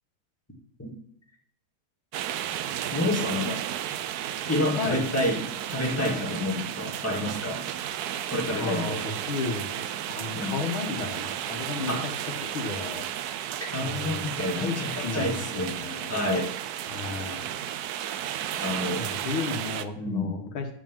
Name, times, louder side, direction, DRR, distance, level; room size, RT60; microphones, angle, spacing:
sound 1, 2.1-19.8, right 11 dB, 80° right, 0.8 m, -33 dB
voice 1, 2.9-3.6 4.5-5.4 5.7-7.6 8.3-9.1 10.3-10.6 11.9-12.1 13.6-15.8 16.1-16.5 18.6-19.1 20.0-20.3, left 1 dB, 5° left, -2 dB, 2.1 m, -29 dB
voice 2, 8.6-9.9 10.1-11.9 12.5-13.0 13.8-14.8 15.0-16.3 16.9-17.5 19.0-20.8, left 4 dB, 75° left, 4 dB, 2.2 m, -33 dB
11.5 x 5.2 x 7.3 m, 0.67 s
omnidirectional pair, 2.3 m